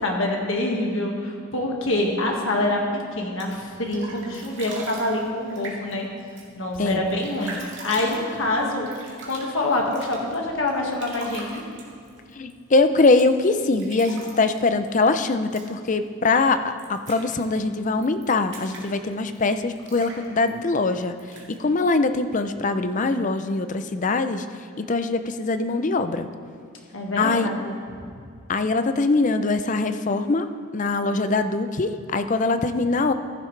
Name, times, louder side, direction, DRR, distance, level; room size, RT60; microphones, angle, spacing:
voice 1, 0.0-2.8 3.1-6.1 6.5-7.6 7.8-11.6 26.9-27.8, left 2 dB, 65° left, 0 dB, 1.8 m, -26 dB
sound 1, 3.2-22.8, right 2 dB, 55° right, 2.1 m, -43 dB
voice 2, 12.3-21.1 21.6-24.5 24.8-26.3 27.2-27.5 28.5-30.5 30.7-33.1, left 3 dB, 35° left, 9 dB, 0.5 m, -22 dB
15.0 x 10.5 x 3.3 m, 2.3 s
head